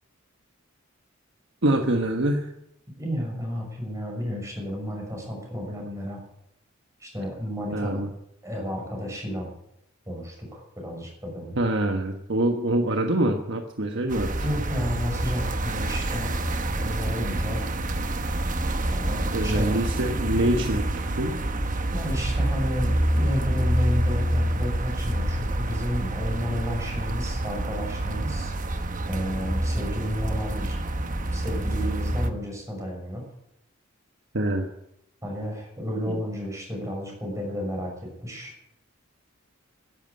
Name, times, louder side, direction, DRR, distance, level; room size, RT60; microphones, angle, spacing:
voice 1, 1.6-2.5 7.7-8.1 11.6-14.3 19.3-20.9 21.2-21.4 34.3-34.7 36.1-36.2, right 1 dB, 60° right, 4 dB, 1.3 m, -25 dB
voice 2, 3.0-6.2 7.0-8.1 8.4-9.5 10.1-11.6 14.4-16.4 16.7-17.7 18.9-19.8 21.9-28.5 29.1-30.8 31.3-33.2 35.2-38.6, equal, 15° right, 0 dB, 6.4 m, -32 dB
sound 1, 14.1-32.3, right 1 dB, 40° right, 1.1 m, -27 dB
13.0 x 11.0 x 8.4 m, 0.79 s
head